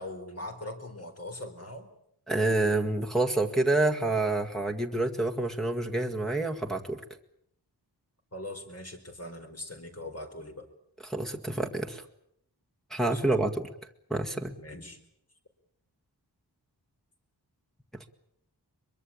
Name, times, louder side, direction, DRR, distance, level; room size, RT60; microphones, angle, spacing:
voice 1, 0.0-1.9 8.3-10.7 13.1-13.3 14.6-15.0, left 1 dB, 35° left, 5 dB, 4.6 m, -41 dB
voice 2, 2.3-7.0 11.0-12.0 12.9-13.7 14.1-14.6, right 2 dB, ahead, 0 dB, 1.9 m, -28 dB
23.5 x 23.0 x 8.8 m, 0.73 s
wide cardioid pair, 105°, 40 cm